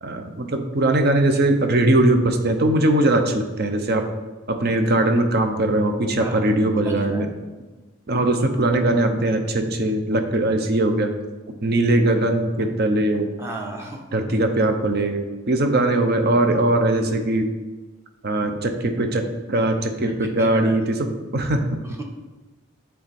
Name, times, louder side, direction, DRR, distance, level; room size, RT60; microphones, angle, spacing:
voice 1, 0.0-4.0 4.6-7.3 8.1-11.1 11.6-13.3 14.1-17.5 18.2-19.2 19.5-20.8 21.3-21.8, right 1 dB, 50° right, 6 dB, 0.7 m, -20 dB
voice 2, 6.8-7.3 13.4-14.2 20.2-20.7 21.8-22.0, right 2 dB, 15° right, 1 dB, 0.8 m, -35 dB
9.1 x 3.6 x 4.3 m, 1.2 s
head